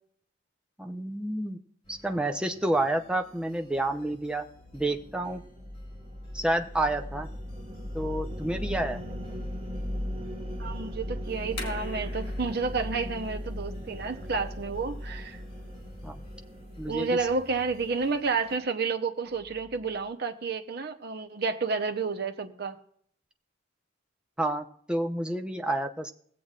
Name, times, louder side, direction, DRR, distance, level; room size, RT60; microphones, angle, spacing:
voice 1, 0.8-1.6 1.9-4.5 4.7-5.4 6.3-7.3 7.9-9.0 16.0-16.2 16.8-17.2 24.4-26.1, right 1 dB, 5° right, 0.6 m, -29 dB
sound 1, 1.8-18.6, left 1 dB, 30° left, 3.5 m, -57 dB
sound 2, 4.6-18.2, equal, 30° right, 1.8 m, -38 dB
voice 2, 10.6-15.4 16.9-22.8, right 4 dB, 55° right, 0.8 m, -30 dB
sound 3, 11.3-18.0, left 2 dB, 60° left, 2.2 m, -47 dB
21.5 x 7.8 x 2.4 m
head